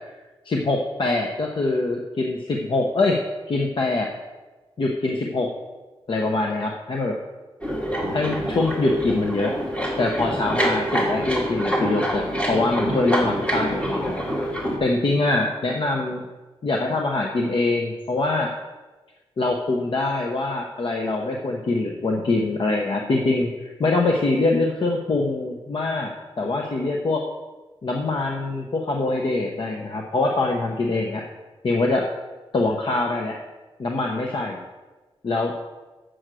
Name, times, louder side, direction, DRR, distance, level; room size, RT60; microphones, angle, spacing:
voice 1, 0.4-3.2 3.5-4.1 4.8-5.5 6.1-7.1 8.1-9.5 10.0-14.2 14.8-16.2 16.6-18.5 19.4-26.1 26.4-27.2 27.8-31.2 31.6-32.0 32.5-33.4 33.8-34.6 35.2-35.5, left 2 dB, 55° left, 1 dB, 0.9 m, -24 dB
sound 1, 7.6-14.8, equal, 10° left, 1.9 m, -26 dB
7.8 x 6.3 x 6.2 m, 1.2 s
wide cardioid pair, 110°, 10 cm